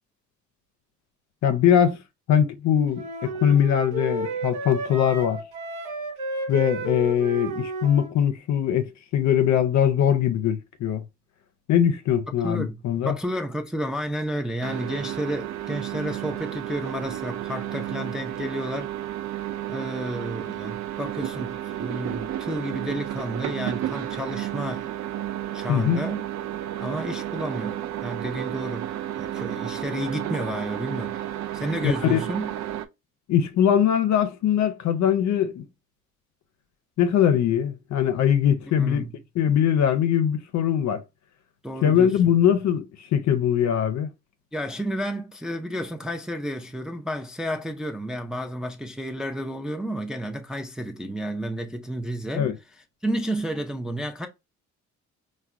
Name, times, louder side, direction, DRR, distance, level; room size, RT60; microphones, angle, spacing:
voice 1, 1.4-2.0 2.3-5.4 6.5-11.0 11.7-13.2 25.7-26.0 31.8-32.2 33.3-35.7 37.0-39.1 39.4-41.0 41.8-44.1 52.3-52.6, left 9 dB, 70° left, 0.5 m, -21 dB
sound 1, 2.9-8.1, right 2 dB, 85° right, 0.9 m, -32 dB
voice 2, 12.4-18.9 19.7-24.9 25.5-26.3 26.8-31.2 31.5-32.6 38.8-39.1 41.6-42.3 44.5-52.5 53.0-54.3, equal, ahead, 0.4 m, -31 dB
sound 2, 14.6-32.9, right 12 dB, 65° right, 0.4 m, -32 dB
4.4 x 2.2 x 2.4 m
cardioid pair, 90°, 30 cm